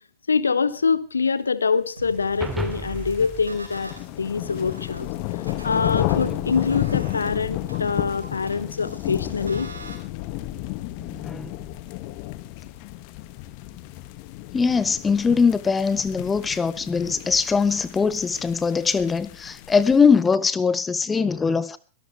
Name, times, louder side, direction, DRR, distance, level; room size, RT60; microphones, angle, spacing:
voice 1, 0.3-3.9 4.2-5.1 5.6-9.7, left 5 dB, 75° left, 1.1 m, -24 dB
sound 1, 2.0-4.0 4.5-10.0, right 2 dB, 80° right, 4.6 m, -42 dB
sound 2, 2.4-4.9, right 2 dB, 10° right, 2.8 m, -34 dB
sound 3, 2.6-20.1, left 16 dB, 45° left, 1.7 m, -32 dB
voice 2, 11.0-11.6 14.5-21.8, left 5 dB, 15° left, 1.1 m, -21 dB
23.0 x 13.0 x 3.2 m
figure-of-eight pair, 90°, 0 cm